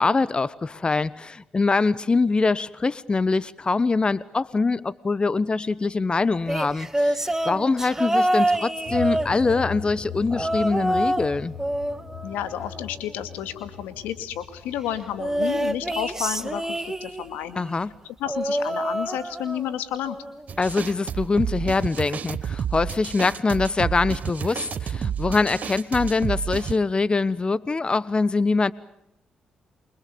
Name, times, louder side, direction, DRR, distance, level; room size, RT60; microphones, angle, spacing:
voice 1, 0.0-11.5 17.6-17.9 20.6-28.7, left 3 dB, 35° left, 1.1 m, -23 dB
sound 1, 6.5-9.8 10.3-11.3 11.6-13.1 15.2-17.4 18.3-19.7 20.1-20.4 21.6-21.7, right 1 dB, 15° right, 2.5 m, -26 dB
sound 2, 8.9-15.8, left 7 dB, 60° left, 7.7 m, -39 dB
voice 2, 12.2-17.6 18.0-20.2, left 10 dB, 85° left, 2.3 m, -31 dB
sound 3, 20.5-26.8, right 8 dB, 60° right, 1.0 m, -30 dB
29.0 x 24.5 x 6.9 m
supercardioid pair, 50°, 3 cm